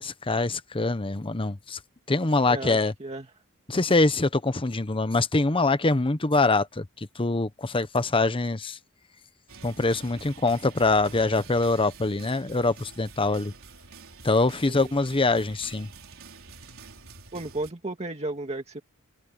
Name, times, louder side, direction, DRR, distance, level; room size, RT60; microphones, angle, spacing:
voice 1, 0.0-1.8 2.1-2.9 3.7-8.8 9.6-13.5 14.2-15.9, left 3 dB, 25° left, 0.9 m, -24 dB
voice 2, 2.5-3.3 14.7-14.9 17.3-18.8, right 2 dB, 30° right, 2.0 m, -34 dB
sound 1, 9.5-17.7, right 4 dB, 65° right, 5.2 m, -47 dB
head